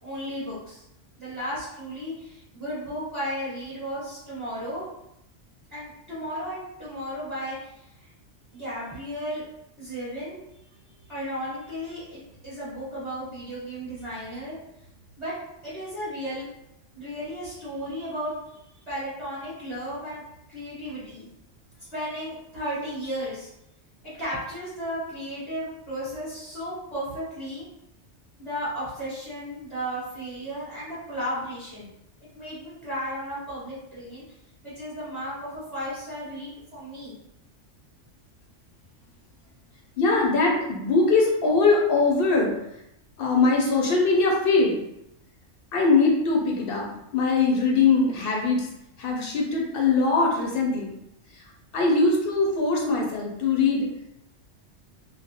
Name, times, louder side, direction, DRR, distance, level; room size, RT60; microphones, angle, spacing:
voice 1, 0.0-0.8 1.2-4.8 5.7-8.1 8.5-9.4 9.8-10.4 11.0-14.6 15.2-15.3 15.6-16.4 16.9-18.3 18.9-20.2 20.5-21.3 21.8-23.5 24.0-27.7 28.4-31.9 32.2-34.2 34.6-37.1, equal, ahead, -11 dB, 0.9 m, -34 dB
voice 2, 40.0-42.5 43.2-44.8 45.7-48.7 49.0-50.9 51.3-51.4 51.7-53.9, left 3 dB, 60° left, -1 dB, 0.6 m, -22 dB
2.3 x 2.1 x 2.7 m, 0.82 s
omnidirectional pair, 1.3 m